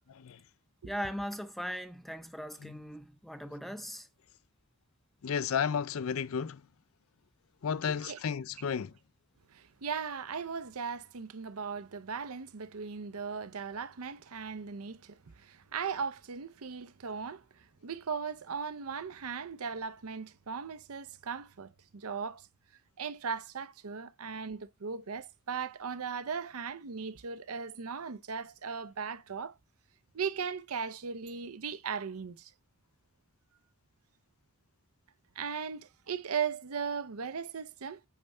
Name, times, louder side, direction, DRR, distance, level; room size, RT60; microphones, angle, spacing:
voice 1, 0.8-4.1, equal, ahead, 0.6 m, -39 dB
voice 2, 5.2-6.6 7.6-8.9, left 7 dB, 70° left, 0.4 m, -32 dB
voice 3, 7.8-8.2 9.5-17.4 17.8-22.5 23.0-29.5 30.1-32.5 35.4-38.0, right 6 dB, 90° right, 0.7 m, -38 dB
8.5 x 3.4 x 5.4 m
head